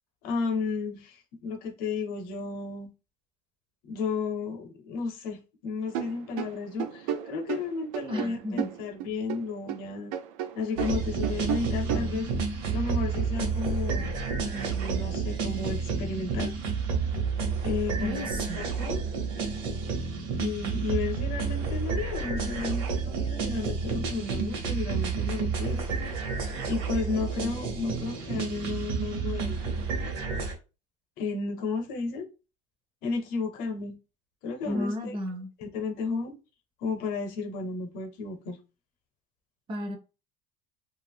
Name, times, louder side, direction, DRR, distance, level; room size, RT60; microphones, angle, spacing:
voice 1, 0.2-2.9 3.8-10.1 10.5-12.3 12.7-14.2 14.4-16.5 17.6-18.3 18.6-19.0 20.4-25.9 26.6-29.7 31.2-32.3 33.0-34.0 34.4-35.2 35.6-36.4 36.8-38.6, left 4 dB, 60° left, 0.7 m, -33 dB
sound 1, 5.9-9.8 10.1-12.2, right 10 dB, 90° right, 0.4 m, -33 dB
voice 2, 8.1-8.7 18.0-18.6 34.7-35.5 39.7-40.0, left 1 dB, 30° right, 0.5 m, -33 dB
sound 2, 10.8-30.5, right 5 dB, 65° right, 1.0 m, -30 dB
2.5 x 2.4 x 3.4 m
cardioid pair, 150°, 17 cm